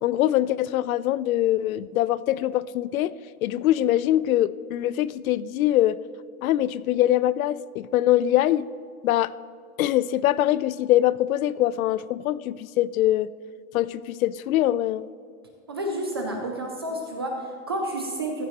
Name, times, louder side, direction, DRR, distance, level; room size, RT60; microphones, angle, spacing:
voice 1, 0.0-3.1 3.4-6.0 6.4-8.7 9.0-9.3 9.8-13.3 13.7-15.0, left 13 dB, 70° left, 18 dB, 0.5 m, -23 dB
voice 2, 15.7-18.5, right 1 dB, 20° right, 1 dB, 0.3 m, -30 dB
15.0 x 12.0 x 3.0 m, 2.2 s
supercardioid pair, 170°, 43 cm